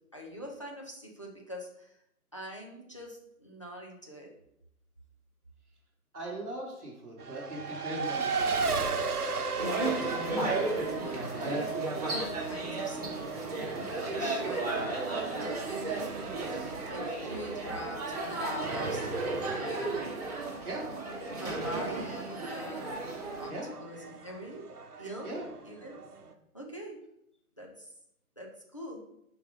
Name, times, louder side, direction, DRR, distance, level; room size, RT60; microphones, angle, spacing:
voice 1, 0.1-2.0 2.3-4.3 10.9-11.7 12.2-13.2 14.0-14.7 15.1-20.3 20.5-23.1 23.4-23.5 23.8-25.3 25.6-26.0 26.5-27.0 27.6-27.9 28.4-29.0, equal, 20° left, -2 dB, 0.6 m, -44 dB
voice 2, 6.1-8.8 11.1-11.6 20.6-20.9 23.5-23.7 25.2-25.5, right 1 dB, 5° right, -15 dB, 0.8 m, -39 dB
Race car auto racing, 7.2-26.3, right 4 dB, 85° right, 0.9 m, -37 dB
sound 1, 9.6-23.5, right 2 dB, 25° right, 1.3 m, -34 dB
5.5 x 4.7 x 3.7 m, 0.79 s
figure-of-eight pair, 155°, 44 cm